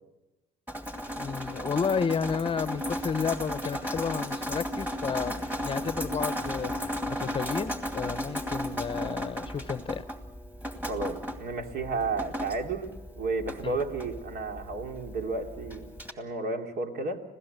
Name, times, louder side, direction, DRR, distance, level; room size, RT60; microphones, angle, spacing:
Drip, 0.7-16.1, equal, 10° right, 2.3 m, -35 dB
voice 1, 1.2-10.0 13.6-13.8, left 6 dB, 30° left, 15 dB, 0.7 m, -32 dB
voice 2, 10.8-15.9 16.2-17.2, right 3 dB, 65° right, 4 dB, 2.8 m, -32 dB
26.0 x 17.0 x 8.0 m, 1.0 s
cardioid pair, 110°, 17 cm